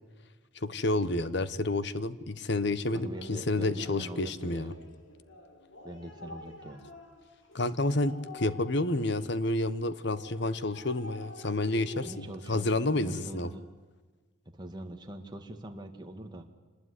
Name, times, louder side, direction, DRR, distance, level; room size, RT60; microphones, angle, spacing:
voice 1, 0.6-4.7 7.5-13.5, left 2 dB, 55° left, 15 dB, 1.1 m, -30 dB
sound 1, 2.8-13.6, left 1 dB, 70° left, 3.7 m, -50 dB
voice 2, 2.9-4.8 5.8-6.8 12.0-13.7 14.5-16.5, right 1 dB, 20° right, 3 dB, 2.1 m, -43 dB
26.5 x 20.0 x 9.9 m, 1.4 s
head